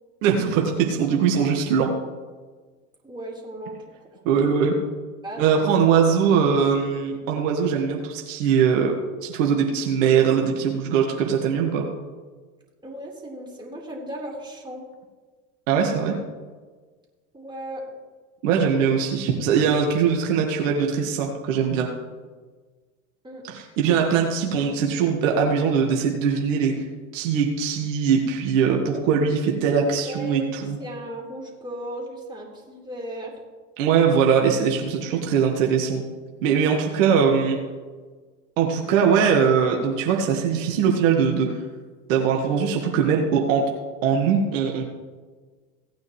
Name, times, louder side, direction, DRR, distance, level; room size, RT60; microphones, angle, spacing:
voice 1, 0.2-1.9 4.3-4.7 5.4-8.9 9.2-11.9 15.7-16.2 18.4-21.9 23.5-26.7 27.1-30.8 33.8-36.0 36.4-37.6 38.6-41.5 42.1-43.6 44.0-44.8, right 6 dB, 65° right, 1 dB, 1.8 m, -21 dB
voice 2, 3.0-3.8 5.2-5.4 12.8-14.9 17.3-17.8 23.2-23.4 30.0-33.3, right 1 dB, 10° right, -3 dB, 4.1 m, -36 dB
17.5 x 9.4 x 3.2 m, 1.4 s
hypercardioid pair, 85°, 41 cm